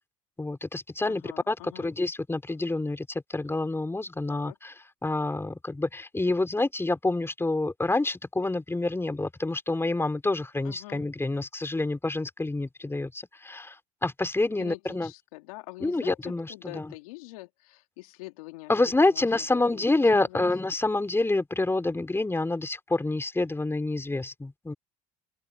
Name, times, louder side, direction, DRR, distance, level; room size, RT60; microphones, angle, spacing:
voice 1, 0.4-4.7 5.0-13.8 14.0-15.1 15.8-16.9 18.7-24.7, left 2 dB, 15° left, 3.3 m, -27 dB
voice 2, 1.1-1.9 4.3-4.6 10.6-11.1 14.5-18.7 19.1-19.9 20.2-20.4, left 21 dB, 85° left, 2.8 m, -44 dB
open air
hypercardioid pair, 75°, 18 cm